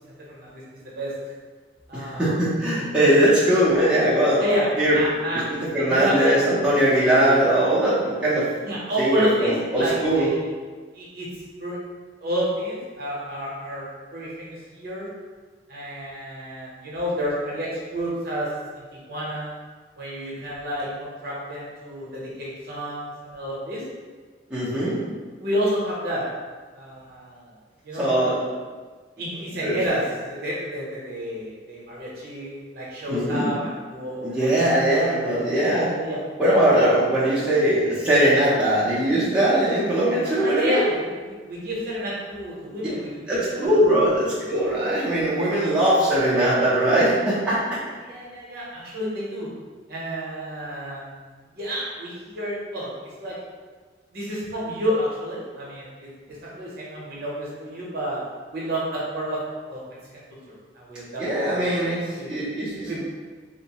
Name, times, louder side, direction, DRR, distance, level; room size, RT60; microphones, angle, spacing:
voice 1, 0.1-1.1 1.9-2.3 4.4-4.7 4.9-5.5 5.8-6.3 8.6-10.3 10.9-11.3 11.6-11.8 12.2-15.1 15.7-18.5 18.7-19.5 20.0-23.9 25.1-26.2 26.7-27.6 27.8-28.5 29.2-35.4 36.0-36.2 36.5-36.6 40.2-44.1 48.0-49.5 49.9-52.9 53.2-53.4 54.1-56.1 56.6-58.2 58.5-59.4 59.7-59.8 60.1-61.2 61.5-62.5 62.9-63.0, equal, 55° right, -6 dB, 0.7 m, -30 dB
voice 2, 1.9-4.4 4.8-5.0 5.7-8.5 9.0-10.3 24.5-25.0 28.0-28.3 29.6-29.8 33.1-33.5 34.2-35.9 36.4-40.9 43.3-47.6 61.2-63.0, right 1 dB, 5° right, -11 dB, 0.6 m, -20 dB
2.7 x 2.0 x 2.9 m, 1.4 s
head